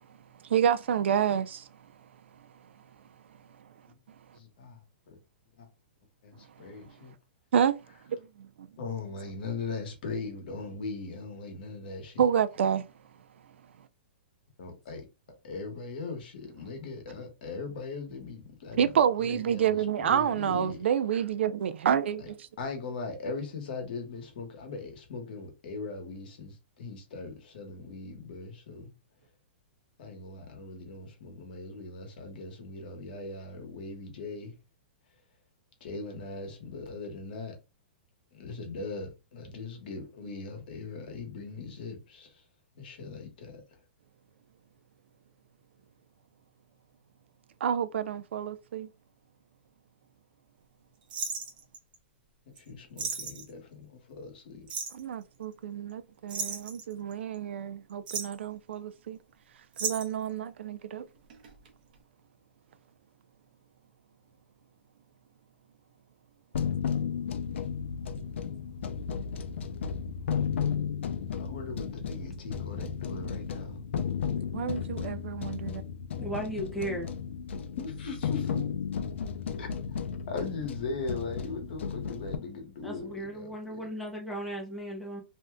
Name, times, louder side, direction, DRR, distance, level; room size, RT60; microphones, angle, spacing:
voice 1, 0.5-1.7 7.5-7.7 8.4-8.7 12.2-12.8 18.8-22.4 47.6-48.9 54.9-59.2 59.8-61.0 74.5-75.8, right 8 dB, 75° right, 0.3 m, -28 dB
voice 2, 4.3-4.8 5.1-5.2 5.6-5.7 6.2-7.1 8.8-12.2 14.6-15.0 15.4-20.8 22.2-22.3 22.6-28.9 30.0-34.5 35.8-37.5 38.3-42.4 42.7-43.6 52.5-54.7 71.4-73.8 77.8-78.6 79.6-79.7 80.3-83.8, left 4 dB, 50° left, 1.0 m, -39 dB
sound 1, 51.1-52.0 52.6-52.7 53.0-53.5 54.7-55.1 56.3-57.4 57.9-58.5 59.7-60.3 61.3-61.7 61.9-62.0, right 5 dB, 50° right, 0.8 m, -35 dB
sound 2, 66.5-82.4, left 7 dB, 85° left, 0.4 m, -34 dB
voice 3, 76.2-77.1 82.8-85.2, right 1 dB, ahead, 0.5 m, -36 dB
2.6 x 2.2 x 3.4 m
hypercardioid pair, 175°, 6 cm